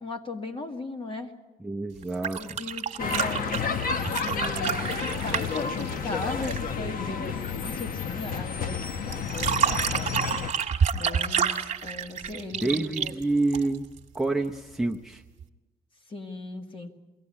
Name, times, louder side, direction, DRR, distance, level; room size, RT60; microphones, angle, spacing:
voice 1, 0.0-1.3 2.3-3.9 4.1-4.8 5.1-8.8 9.0-10.1 10.9-13.1 16.1-16.9, left 2 dB, 35° left, 5 dB, 2.0 m, -38 dB
voice 2, 1.6-2.6 12.6-13.9 14.1-15.2, right 2 dB, ahead, 6 dB, 0.8 m, -28 dB
sound 1, 2.0-6.7 9.1-14.0 15.4-15.5, right 7 dB, 45° right, 1.6 m, -29 dB
sound 2, 3.0-10.5, left 6 dB, 60° left, 1.1 m, -31 dB
23.0 x 17.0 x 9.8 m, 1.1 s
cardioid pair, 150°, 16 cm